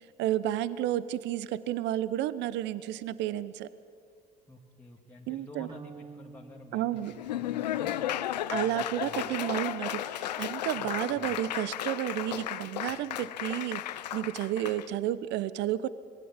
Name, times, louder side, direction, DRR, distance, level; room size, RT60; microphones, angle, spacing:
voice 1, 0.2-3.7 5.3-5.7 6.7-7.1 8.5-15.9, right 13 dB, 60° right, 16 dB, 0.9 m, -31 dB
voice 2, 4.5-8.1 8.5-9.3 10.8-11.4, left 1 dB, 10° left, -1 dB, 2.1 m, -50 dB
sound 1, 5.7-8.0, right 5 dB, 20° right, 1.3 m, -50 dB
Laughter / Applause, 7.0-14.9, left 12 dB, 85° left, 0.7 m, -34 dB
26.5 x 19.5 x 7.4 m, 2.2 s
hypercardioid pair, 65°, 21 cm